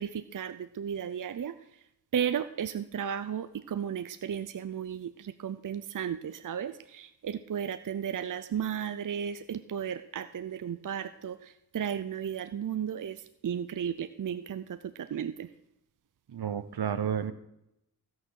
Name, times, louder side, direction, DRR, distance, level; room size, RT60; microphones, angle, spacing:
voice 1, 0.0-1.5 2.1-15.5, right 8 dB, 55° right, 12 dB, 0.6 m, -34 dB
voice 2, 16.3-17.3, right 8 dB, 75° right, 13 dB, 1.0 m, -31 dB
16.0 x 6.3 x 6.4 m, 0.82 s
cardioid pair, 55°, 39 cm